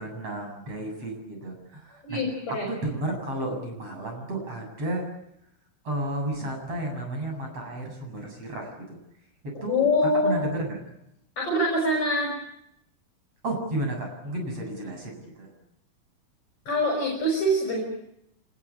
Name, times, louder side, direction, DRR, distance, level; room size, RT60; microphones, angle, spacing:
voice 1, 0.0-2.2 2.5-5.0 5.9-9.0 9.6-10.8 13.4-15.5, right 1 dB, 40° right, 3 dB, 8.8 m, -32 dB
voice 2, 2.0-2.7 9.6-10.4 11.4-12.3 16.7-17.8, left 1 dB, 35° left, 0 dB, 7.0 m, -24 dB
26.5 x 21.5 x 8.6 m, 0.79 s
omnidirectional pair, 4.4 m